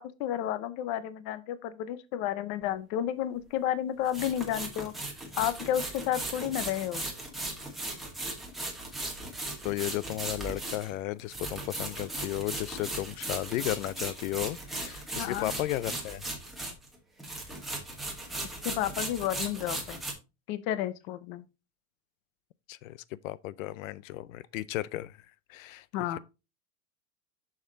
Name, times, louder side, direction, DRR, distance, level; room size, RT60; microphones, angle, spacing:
voice 1, 0.0-4.9 5.4-7.0 15.2-15.5 18.6-20.0 20.5-21.5 25.9-26.2, left 11 dB, 35° left, 0.6 m, -31 dB
sound 1, 2.6-2.7 4.1-16.9 17.2-20.1, right 2 dB, ahead, 1.2 m, -37 dB
voice 2, 9.6-16.3 22.7-25.2 25.5-25.9, left 16 dB, 75° left, 0.6 m, -34 dB
6.9 x 6.6 x 3.8 m
supercardioid pair, 180°, 40 cm